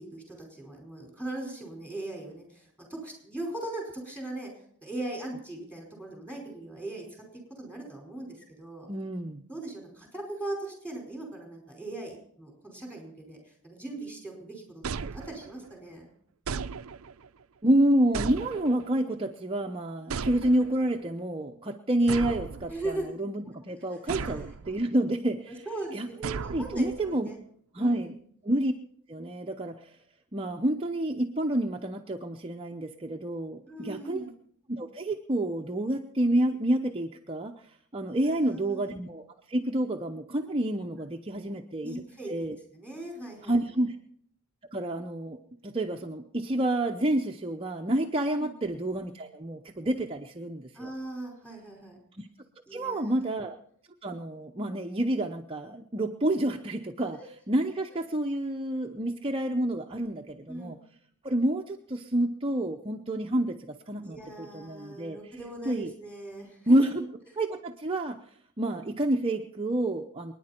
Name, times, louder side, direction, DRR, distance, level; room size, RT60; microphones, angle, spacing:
voice 1, 0.0-4.5 4.8-7.2 7.6-8.9 9.5-16.1 22.7-23.1 24.1-24.5 25.6-27.4 27.7-28.1 33.7-34.3 38.2-38.8 41.3-41.5 41.8-43.6 48.4-48.5 50.7-52.0 52.7-53.2 57.1-57.3 60.5-60.7 64.0-67.0, right 2 dB, 5° left, 0 dB, 4.9 m, -39 dB
voice 2, 8.9-9.4 17.6-25.6 25.9-27.3 27.7-28.1 28.4-28.7 29.1-30.0 30.3-34.3 34.7-37.5 37.9-39.2 39.5-42.0 42.3-42.6 43.5-44.0 44.7-45.4 45.6-50.9 52.2-52.3 52.7-53.6 54.0-60.8 61.2-65.2 65.7-65.9 66.7-67.0 67.4-68.2 68.6-70.3, right 1 dB, 25° right, 2 dB, 0.7 m, -29 dB
sound 1, 14.8-15.7 16.5-17.3 18.1-19.0 20.1-20.9 22.1-23.1 24.1-24.9 26.2-27.1, right 5 dB, 65° right, 0.5 m, -36 dB
28.5 x 10.0 x 4.4 m, 0.66 s
head